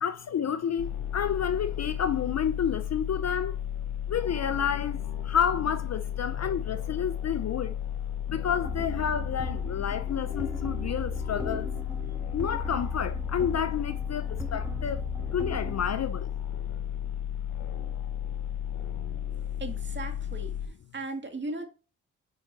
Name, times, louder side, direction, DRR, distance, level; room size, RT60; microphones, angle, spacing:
voice 1, 0.0-3.6 4.1-7.7 8.3-11.7 12.3-15.0 15.3-16.3, left 8 dB, 40° left, 0.6 m, -30 dB
sound 1, 0.8-20.7, left 10 dB, 90° left, 0.8 m, -33 dB
sound 2, 8.6-16.2, right 2 dB, 5° right, 1.2 m, -39 dB
voice 2, 19.6-21.7, right 2 dB, 25° right, 2.1 m, -37 dB
6.6 x 5.0 x 4.1 m
hypercardioid pair, 50°, 40 cm